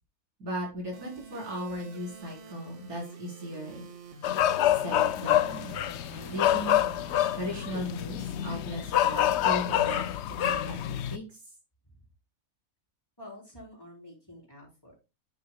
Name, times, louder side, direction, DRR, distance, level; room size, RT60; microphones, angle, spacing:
voice 1, 0.4-3.9 4.7-5.8 6.3-6.7 7.3-11.2, equal, 85° right, -3 dB, 4.6 m, -37 dB
sound 1, 0.9-8.9, right 5 dB, 55° right, 1.4 m, -48 dB
sound 2, 4.2-11.2, left 11 dB, 65° left, 0.7 m, -27 dB
voice 2, 13.2-15.0, left 1 dB, 15° left, -3 dB, 4.3 m, -48 dB
9.5 x 8.5 x 2.2 m, 0.28 s
omnidirectional pair, 1.5 m